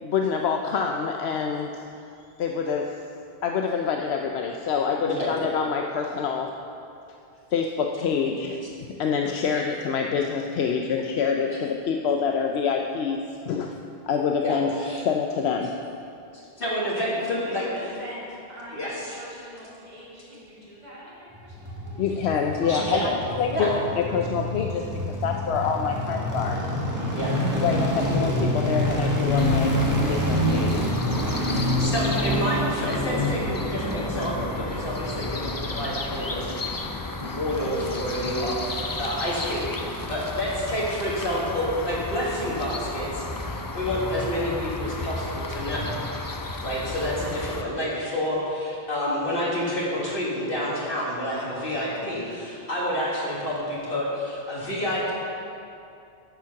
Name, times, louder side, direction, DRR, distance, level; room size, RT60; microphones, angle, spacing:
voice 1, 0.0-1.9 2.4-3.0 3.4-6.5 7.5-13.7 14.1-14.7 15.0-15.7 22.0-26.6 27.6-29.7 30.1-30.9, left 6 dB, 80° left, 2 dB, 0.9 m, -26 dB
voice 2, 14.4-15.0 16.3-17.7 18.7-19.2 22.6-23.1 23.5-23.7 27.2-27.3 31.8-36.9 37.2-45.9 46.2-46.3 46.6-55.1, equal, 60° left, -6 dB, 2.1 m, -29 dB
voice 3, 16.9-22.0 27.0-27.3 31.9-32.3, equal, 40° right, -8 dB, 3.1 m, -42 dB
sound 1, 21.4-36.6 36.8-36.9, equal, 15° right, 1.5 m, -27 dB
sound 2, 29.4-47.6, left 2 dB, 25° left, 0.5 m, -33 dB
11.0 x 7.3 x 5.9 m, 2.6 s
omnidirectional pair, 1.1 m